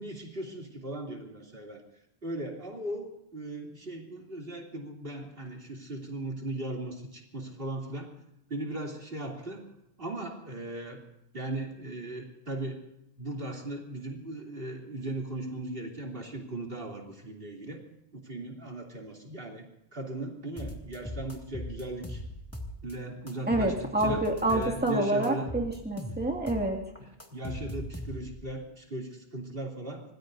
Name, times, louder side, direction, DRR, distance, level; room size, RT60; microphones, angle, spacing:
voice 1, 0.0-1.8 2.2-8.1 8.5-9.6 10.0-11.0 11.3-12.8 13.2-17.8 18.1-19.6 19.9-22.2 22.8-25.5 26.1-26.2 27.0-30.0, right 1 dB, 55° right, 0 dB, 3.2 m, -38 dB
sound 1, 20.6-22.9 23.3-24.9 25.2-28.5, left 1 dB, 15° left, 2.1 m, -39 dB
voice 2, 23.5-26.8, right 1 dB, 10° right, -1 dB, 2.3 m, -27 dB
26.0 x 19.5 x 2.7 m, 0.80 s
omnidirectional pair, 1.1 m